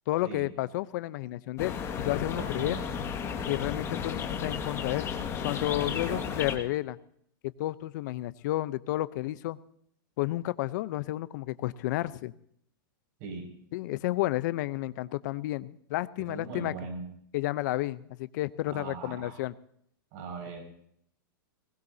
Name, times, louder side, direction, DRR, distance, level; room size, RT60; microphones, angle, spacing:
voice 1, 0.1-2.8 3.5-5.1 5.4-7.0 7.6-9.6 10.2-12.3 13.7-16.7 17.3-19.5, left 17 dB, 55° left, 15 dB, 0.8 m, -31 dB
sound 1, 1.6-6.6, left 7 dB, 25° left, 1.9 m, -34 dB
voice 2, 2.3-2.9 5.8-6.6 13.2-13.5 16.2-17.1 18.7-19.4 20.1-20.6, right 4 dB, 45° right, 1 dB, 5.9 m, -40 dB
20.5 x 20.5 x 2.8 m, 0.67 s
hypercardioid pair, 140°, 12 cm